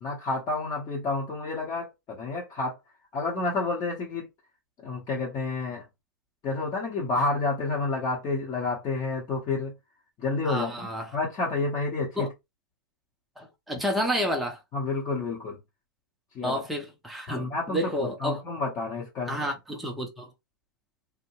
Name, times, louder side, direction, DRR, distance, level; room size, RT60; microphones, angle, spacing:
voice 1, 0.0-2.8 3.1-4.3 4.8-5.8 6.4-9.7 10.2-12.3 14.7-15.6 16.3-16.6 17.3-19.4, left 3 dB, 30° left, 0.9 m, -30 dB
voice 2, 10.4-11.1 12.2-12.3 13.4-14.6 16.4-18.4 19.3-20.3, equal, ahead, 0.6 m, -30 dB
2.6 x 2.1 x 3.0 m
hypercardioid pair, 120°, 11 cm